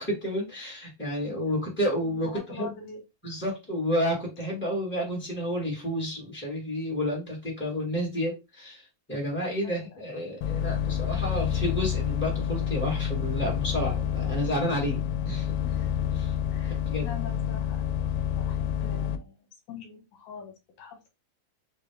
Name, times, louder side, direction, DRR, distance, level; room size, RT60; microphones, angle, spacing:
voice 1, 0.0-2.7 3.2-15.5 16.1-16.3 16.7-17.1, equal, 15° left, -3 dB, 0.3 m, -30 dB
voice 2, 2.0-3.0 9.6-10.1 15.6-15.9 16.5-18.0 18.3-21.1, left 5 dB, 65° left, 2 dB, 2.5 m, -45 dB
sound 1, 10.4-19.2, left 9 dB, 80° left, 2.2 m, -28 dB
5.9 x 2.4 x 3.3 m, 0.24 s
omnidirectional pair, 4.2 m